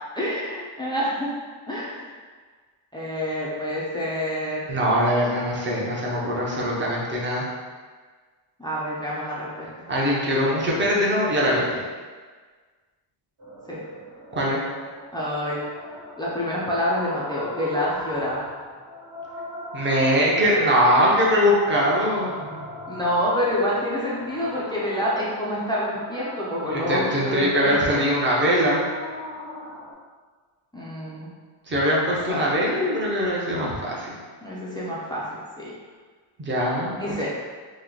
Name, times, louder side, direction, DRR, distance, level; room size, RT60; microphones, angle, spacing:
voice 1, 0.2-1.3 1.7-2.1 2.9-4.7 8.6-9.7 13.7-13.8 15.1-15.6 16.2-18.4 22.9-28.0 30.7-31.3 32.3-32.5 34.4-35.7 36.9-37.4, equal, 10° left, -7 dB, 0.4 m, -27 dB
voice 2, 4.7-7.4 9.9-11.8 14.3-14.6 19.7-22.4 26.7-28.8 31.7-34.1 36.4-36.9, equal, 25° right, -5 dB, 0.7 m, -22 dB
sound 1, 13.4-29.9, left 1 dB, 50° right, 1.3 m, -39 dB
3.0 x 2.1 x 3.7 m, 1.5 s
cardioid pair, 135°, 49 cm